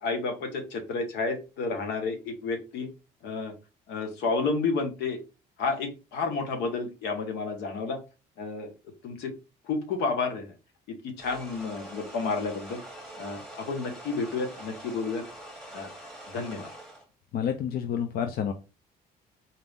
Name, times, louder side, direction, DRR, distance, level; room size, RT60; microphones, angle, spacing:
voice 1, 0.0-2.9 3.2-3.5 3.9-5.2 5.6-8.0 8.4-8.7 9.0-9.3 9.6-10.5 10.9-12.8 13.2-15.2 15.7-15.9 16.3-16.7, left 4 dB, 85° left, 5 dB, 1.1 m, -31 dB
sound 1, 11.2-17.0, right 1 dB, 5° left, 1.2 m, -44 dB
voice 2, 17.3-18.5, left 8 dB, 60° left, 7 dB, 0.5 m, -29 dB
4.2 x 2.5 x 3.5 m, 0.30 s
cardioid pair, 110°, 17 cm